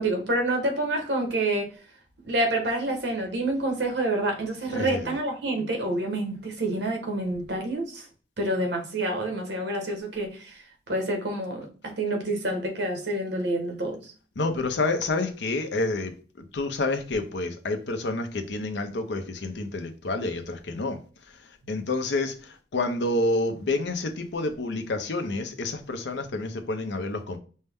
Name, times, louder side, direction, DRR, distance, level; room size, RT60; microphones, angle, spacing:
voice 1, 0.0-1.7 2.2-8.0 8.4-10.6 10.9-14.0, right 1 dB, 75° right, 1.1 m, -28 dB
voice 2, 4.7-5.1 14.4-21.0 21.7-27.4, left 2 dB, 80° left, 0.7 m, -29 dB
5.3 x 2.2 x 3.5 m
head